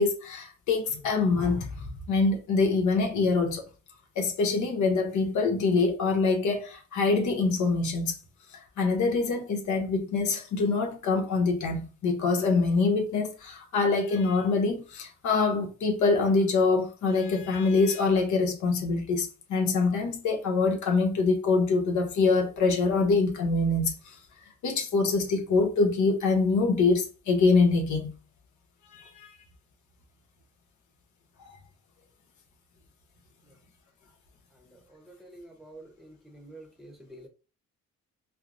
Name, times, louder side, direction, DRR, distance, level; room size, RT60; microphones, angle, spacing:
voice 1, 0.0-3.6 4.2-8.2 8.5-24.2 24.6-28.1 28.9-29.4, left 3 dB, 70° left, 0.8 m, -25 dB
voice 2, 34.5-37.3, right 1 dB, ahead, 0.8 m, -49 dB
4.4 x 2.0 x 2.5 m
cardioid pair, 90°, 30 cm